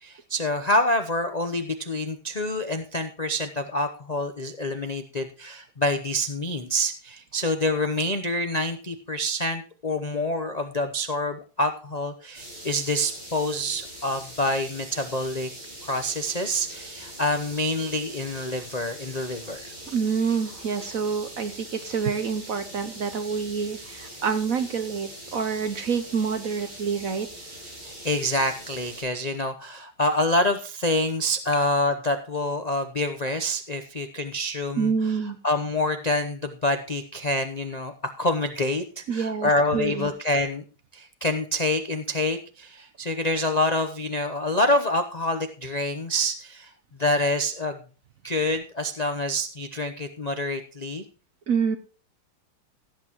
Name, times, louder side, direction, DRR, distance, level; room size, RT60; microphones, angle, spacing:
voice 1, 0.0-15.5 15.8-19.6 27.9-34.9 35.4-40.6 40.9-46.7 47.0-47.8 48.2-51.0, left 1 dB, 70° left, 7 dB, 0.3 m, -27 dB
sound 1, 12.3-29.0, right 1 dB, 90° right, 8.1 m, -42 dB
voice 2, 19.9-27.3 34.8-35.4 39.1-40.1 51.5-51.8, right 6 dB, 60° right, 10 dB, 0.9 m, -27 dB
16.5 x 8.5 x 3.0 m, 0.37 s
omnidirectional pair, 2.3 m